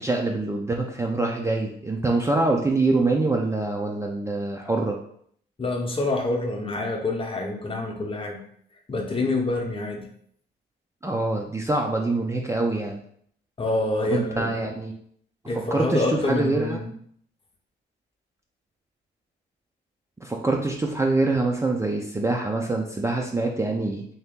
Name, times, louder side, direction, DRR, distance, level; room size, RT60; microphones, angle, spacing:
voice 1, 0.0-5.0 11.0-13.0 14.0-14.9 15.5-16.8 20.2-24.1, right 2 dB, 15° right, 0 dB, 0.4 m, -25 dB
voice 2, 5.6-8.4 8.9-10.1 13.6-14.7 15.5-16.9, left 2 dB, 25° left, 2 dB, 0.8 m, -27 dB
3.1 x 2.8 x 3.6 m, 0.64 s
cardioid pair, 90°, 20 cm